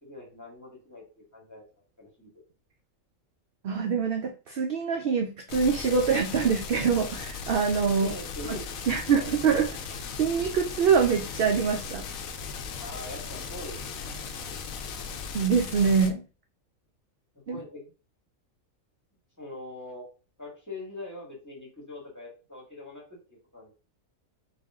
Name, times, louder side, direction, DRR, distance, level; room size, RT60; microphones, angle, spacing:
voice 1, 0.0-1.6 2.0-2.3 7.8-8.6 9.1-9.3 12.8-14.0 17.5-17.9 19.4-20.0 20.4-23.0 23.5-23.7, left 2 dB, 15° left, -4 dB, 1.6 m, -42 dB
voice 2, 3.6-8.1 8.9-9.7 10.2-12.1 15.3-16.2 17.5-17.6, right 6 dB, 65° right, 3 dB, 0.6 m, -24 dB
sound 1, 5.5-16.1, left 5 dB, 80° left, 1.0 m, -37 dB
4.1 x 2.7 x 3.6 m, 0.35 s
omnidirectional pair, 1.4 m